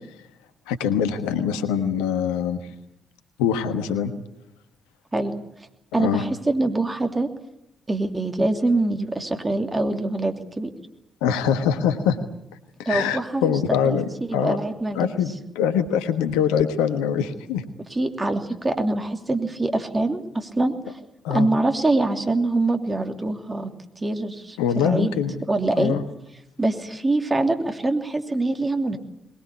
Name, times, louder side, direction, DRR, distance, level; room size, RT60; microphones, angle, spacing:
voice 1, 0.7-2.6 3.4-4.1 6.0-6.2 11.2-12.2 12.8-14.0 14.3-14.6 14.9-17.6 21.2-21.5 24.6-25.3 25.8-26.0, left 8 dB, 75° left, 9 dB, 1.3 m, -23 dB
voice 2, 5.9-7.3 7.9-10.7 12.8-13.5 13.8-14.0 14.3-15.1 17.9-21.0 21.3-23.7 24.0-25.1 25.5-25.9 26.6-29.0, right 2 dB, 25° right, 5 dB, 2.9 m, -24 dB
21.5 x 20.0 x 8.4 m, 0.85 s
figure-of-eight pair, 40°, 0 cm